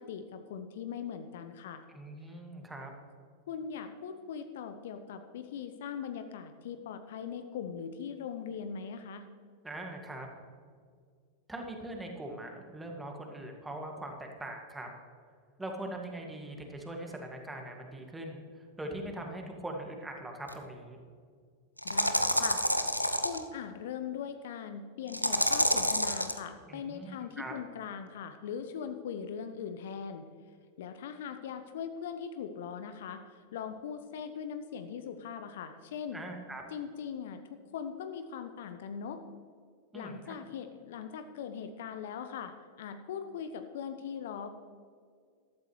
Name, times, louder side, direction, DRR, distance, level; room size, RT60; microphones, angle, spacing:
voice 1, 0.0-1.8 3.5-9.3 21.8-22.6 23.2-30.2 30.8-36.2 36.7-39.2 39.9-44.5, left 7 dB, 55° left, 9 dB, 0.8 m, -40 dB
voice 2, 1.9-2.9 9.6-10.3 11.5-14.9 15.6-21.0 26.7-27.5 36.1-36.6 39.9-40.4, right 1 dB, 10° right, 2 dB, 2.1 m, -41 dB
sound 1, 20.5-20.6 21.8-23.4 25.1-26.4, equal, 90° left, 0.6 m, -28 dB
14.5 x 13.0 x 3.2 m, 2.1 s
figure-of-eight pair, 90°, 0 cm